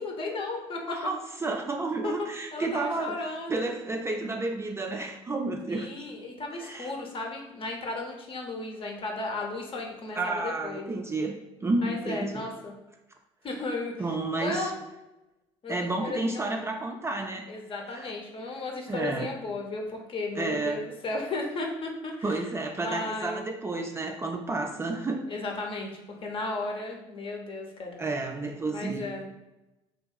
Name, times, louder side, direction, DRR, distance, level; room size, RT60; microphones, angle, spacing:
voice 1, 0.0-0.9 2.0-2.1 2.5-3.7 5.7-10.9 11.8-12.7 13.4-13.9 14.4-14.7 15.6-16.5 17.5-22.4 22.8-23.4 25.3-28.1 28.6-29.2, left 2 dB, 40° left, 1 dB, 0.7 m, -35 dB
voice 2, 0.9-3.2 3.5-5.9 6.5-6.9 10.2-11.3 11.6-12.5 14.0-14.7 15.7-17.5 17.9-18.1 18.9-19.3 20.4-20.8 22.2-25.3 28.0-29.1, right 2 dB, 20° right, 2 dB, 0.3 m, -31 dB
2.9 x 2.7 x 2.3 m, 0.99 s
hypercardioid pair, 55°, 14 cm